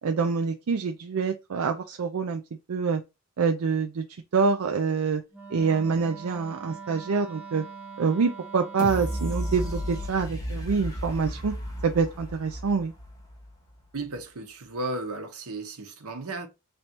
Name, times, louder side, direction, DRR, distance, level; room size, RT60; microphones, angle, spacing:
voice 1, 0.0-2.4 2.7-3.0 3.4-4.0 4.3-5.2 5.5-7.6 8.0-11.5 11.8-12.9, right 5 dB, 70° right, 0.4 m, -26 dB
Wind instrument woodwind instrument, 5.3-10.2, right 5 dB, 5° right, 0.8 m, -43 dB
sound 1, 8.8-13.7 14.1-14.2, equal, 15° left, 1.0 m, -34 dB
voice 2, 13.9-16.5, right 2 dB, 90° right, 1.0 m, -34 dB
3.3 x 2.7 x 4.3 m
head